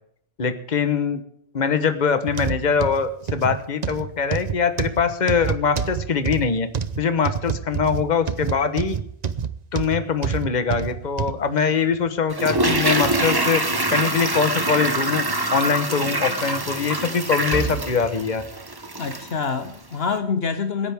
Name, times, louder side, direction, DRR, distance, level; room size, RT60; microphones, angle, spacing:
voice 1, 0.4-1.2 1.5-6.7 7.0-9.0 9.7-13.6 13.9-15.2 15.5-18.4, left 6 dB, 40° left, 10 dB, 1.3 m, -22 dB
sound 1, 2.3-11.4 11.9-12.1 12.7-12.8, right 7 dB, 40° right, 0.8 m, -27 dB
Toilet flush, 12.3-19.4 19.7-19.8, right 2 dB, 20° right, 1.3 m, -24 dB
voice 2, 19.0-20.9, left 5 dB, 65° left, 9 dB, 1.2 m, -26 dB
26.0 x 10.5 x 3.6 m, 0.71 s
omnidirectional pair, 1.1 m